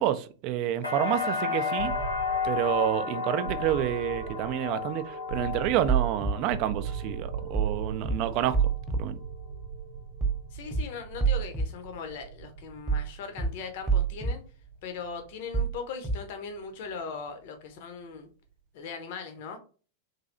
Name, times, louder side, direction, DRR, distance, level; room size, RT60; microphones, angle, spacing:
voice 1, 0.0-1.9 2.4-9.2, right 11 dB, 40° right, 0.3 m, -29 dB
sound 1, 0.8-8.7 9.1-9.8, left 5 dB, 85° left, 1.2 m, -33 dB
sound 2, 1.8-17.6, right 6 dB, 80° right, 0.6 m, -41 dB
sound 3, 5.9-6.3 7.5-7.7 8.0-8.1 8.5-9.0 10.2-10.4 10.7-10.8 11.2-11.6 12.9-13.1 13.4-13.5 13.9-14.3 15.5-15.7 16.0-16.1, right 5 dB, 15° right, 0.9 m, -25 dB
voice 2, 10.5-14.4 14.8-18.3 18.7-19.6, left 5 dB, 50° left, 0.6 m, -39 dB
3.1 x 2.7 x 2.5 m
figure-of-eight pair, 90°, 0 cm